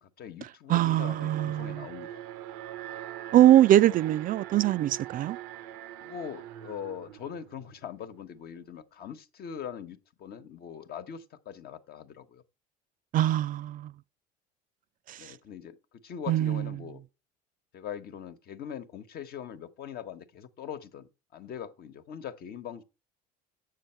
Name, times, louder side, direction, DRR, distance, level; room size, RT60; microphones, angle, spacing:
voice 1, 0.0-2.2 6.0-12.4 15.2-17.0 17.7-22.8, left 8 dB, 50° left, 1.2 m, -42 dB
voice 2, 0.7-1.8 3.3-5.4 13.1-13.9 15.1-15.2 16.3-16.6, right 13 dB, 45° right, 0.4 m, -22 dB
Alarm, 1.0-8.1, right 12 dB, 80° right, 0.6 m, -42 dB
7.9 x 6.6 x 4.5 m
hypercardioid pair, 80°, 20 cm